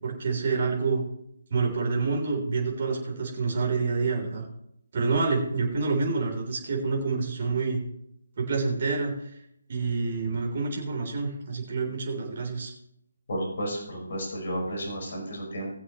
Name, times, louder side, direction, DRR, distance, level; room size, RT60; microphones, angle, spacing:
voice 1, 0.0-1.0 1.5-4.5 4.9-7.8 8.4-9.2 9.7-12.7, right 4 dB, 45° right, 1 dB, 3.8 m, -27 dB
voice 2, 13.3-15.8, equal, 50° left, -1 dB, 5.2 m, -32 dB
20.5 x 7.8 x 3.2 m, 0.77 s
figure-of-eight pair, 150°, 0 cm